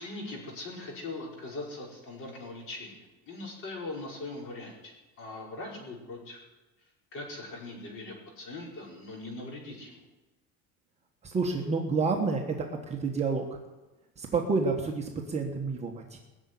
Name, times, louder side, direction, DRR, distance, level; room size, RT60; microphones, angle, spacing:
voice 1, 0.0-6.4 7.1-10.0, left 2 dB, 40° left, -1 dB, 5.2 m, -41 dB
voice 2, 11.2-13.6 14.2-16.2, right 4 dB, 20° right, 1 dB, 1.3 m, -29 dB
20.0 x 7.2 x 9.6 m, 1.1 s
cardioid pair, 175°, 32 cm